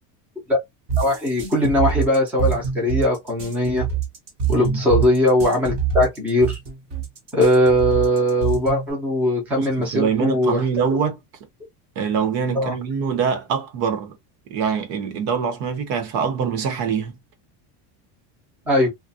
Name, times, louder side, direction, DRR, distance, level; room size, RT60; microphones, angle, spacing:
sound 1, 0.9-8.9, right 8 dB, 30° right, 0.8 m, -25 dB
voice 1, 1.0-3.9 4.5-6.6 7.3-10.6 12.5-12.7 18.7-18.9, left 1 dB, 5° right, 0.5 m, -20 dB
voice 2, 9.6-11.2 12.0-14.2 14.5-17.1, right 6 dB, 80° right, 1.0 m, -24 dB
2.4 x 2.2 x 2.6 m
cardioid pair, 175°, 49 cm